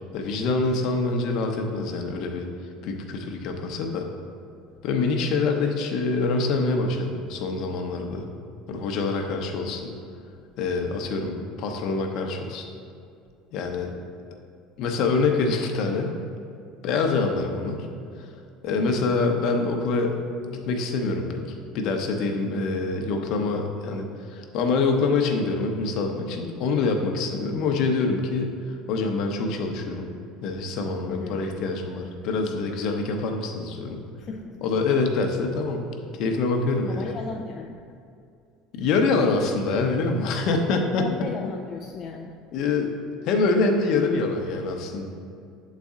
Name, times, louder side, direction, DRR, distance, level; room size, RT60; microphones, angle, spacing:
voice 1, 0.1-2.5 2.8-4.1 4.8-8.2 8.7-9.9 10.6-12.6 13.5-13.9 14.8-16.1 16.8-17.8 18.2-18.3 18.6-20.1 20.5-21.4 21.7-30.1 30.4-34.0 34.6-35.8 36.2-37.0 38.8-41.0 42.5-42.9 43.2-45.1, left 3 dB, 55° left, 3 dB, 0.7 m, -25 dB
voice 2, 18.8-19.1 31.1-31.4 34.2-34.7 36.9-37.8 41.0-42.4, left 4 dB, 35° left, 1 dB, 0.4 m, -35 dB
7.4 x 4.1 x 3.6 m, 2.4 s
cardioid pair, 140°, 0 cm